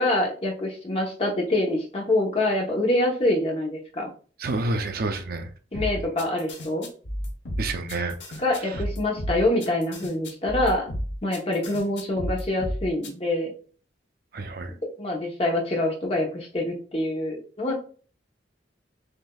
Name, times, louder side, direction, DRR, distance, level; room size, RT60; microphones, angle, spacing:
voice 1, 0.0-4.1 5.7-6.9 8.4-10.9 11.2-13.5 15.0-17.8, left 1 dB, 30° left, 0 dB, 0.9 m, -25 dB
voice 2, 4.4-5.5 7.6-8.8 14.3-14.7, right 3 dB, 55° right, 7 dB, 0.5 m, -30 dB
sound 1, 5.7-13.1, equal, 70° left, 1.1 m, -32 dB
6.4 x 2.7 x 2.3 m, 0.41 s
head